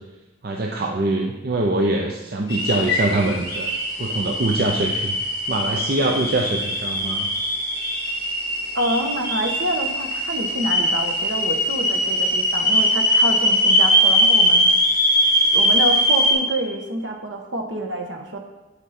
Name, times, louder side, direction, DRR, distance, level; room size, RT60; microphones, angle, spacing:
voice 1, 0.4-3.7 4.0-5.2 5.5-7.3, right 2 dB, 50° right, 1 dB, 0.7 m, -23 dB
sound 1, 2.5-16.3, equal, 15° left, 2.5 m, -21 dB
voice 2, 8.7-14.7 15.5-18.4, right 1 dB, 65° right, 2 dB, 1.3 m, -27 dB
8.5 x 8.3 x 4.3 m, 1.1 s
head